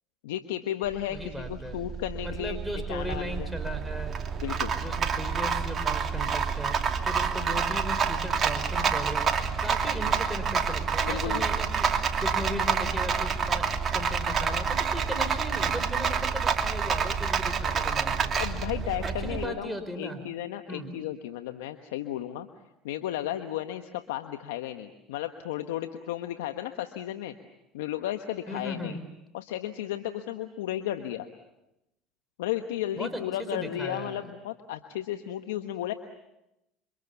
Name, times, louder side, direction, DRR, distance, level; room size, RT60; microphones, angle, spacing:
voice 1, 0.2-3.5 4.4-4.7 11.0-11.5 18.3-22.5 22.8-27.3 27.7-29.0 29.3-31.3 32.4-35.9, left 12 dB, 85° left, 7 dB, 1.3 m, -34 dB
Rattle, 0.9-19.5, right 6 dB, 35° right, 2.8 m, -28 dB
voice 2, 1.1-1.8 2.2-4.2 4.8-6.8 7.0-13.7 13.9-18.3 19.0-20.2 20.7-20.9 28.5-29.0 32.9-34.2, equal, 5° right, 6 dB, 4.9 m, -37 dB
28.0 x 25.0 x 7.1 m, 0.90 s
hypercardioid pair, 80°, 0 cm